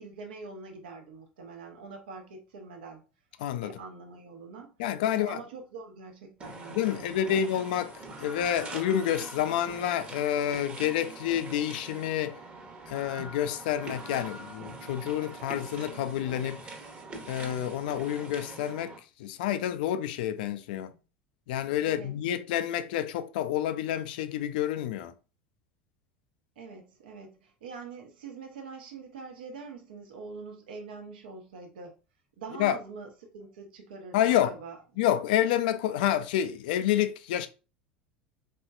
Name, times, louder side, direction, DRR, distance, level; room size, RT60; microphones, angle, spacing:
voice 1, 0.0-3.0 3.6-4.7 5.1-7.4 12.0-12.1 20.9-21.0 21.8-22.1 26.6-31.9 32.4-33.1 33.3-34.8, right 4 dB, 65° right, 0.9 m, -44 dB
voice 2, 3.4-3.8 4.8-5.4 6.7-12.4 12.9-16.6 17.3-18.9 19.2-20.9 21.5-25.1 32.6-32.8 34.1-34.6 35.0-37.5, left 11 dB, 60° left, 0.4 m, -28 dB
sound 1, 6.4-19.0, right 3 dB, 25° right, 1.0 m, -43 dB
4.2 x 3.0 x 2.3 m
figure-of-eight pair, 75°, 5 cm